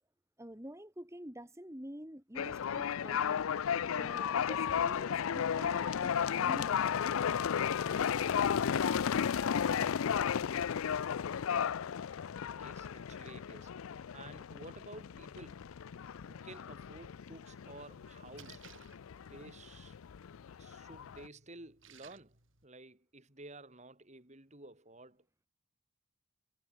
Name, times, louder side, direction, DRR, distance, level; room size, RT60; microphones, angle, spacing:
voice 1, 0.4-3.4 3.9-6.8, equal, 15° right, 2.7 m, -48 dB
sound 1, 2.4-21.3, left 7 dB, 80° left, 0.4 m, -34 dB
voice 2, 12.5-15.7 16.3-18.7 19.3-20.0 20.6-25.3, right 2 dB, 35° right, 3.5 m, -53 dB
Splash splatter, 17.6-22.7, right 6 dB, 65° right, 7.9 m, -61 dB
head